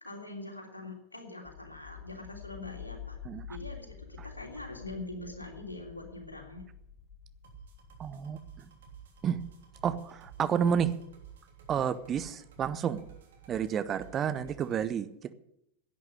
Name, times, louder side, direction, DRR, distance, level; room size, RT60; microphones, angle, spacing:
voice 1, 0.0-3.2 3.5-6.6, left 2 dB, 80° left, 2 dB, 3.1 m, -43 dB
sound 1, 1.4-12.1, left 8 dB, 55° left, 2.4 m, -49 dB
sound 2, 7.4-14.8, right 9 dB, 60° right, 3.0 m, -52 dB
voice 2, 8.0-8.7 9.2-9.4 9.8-11.0 11.7-13.0 13.5-15.3, right 8 dB, 25° right, 14 dB, 0.8 m, -30 dB
11.0 x 9.3 x 9.8 m, 0.79 s
figure-of-eight pair, 90°, 0 cm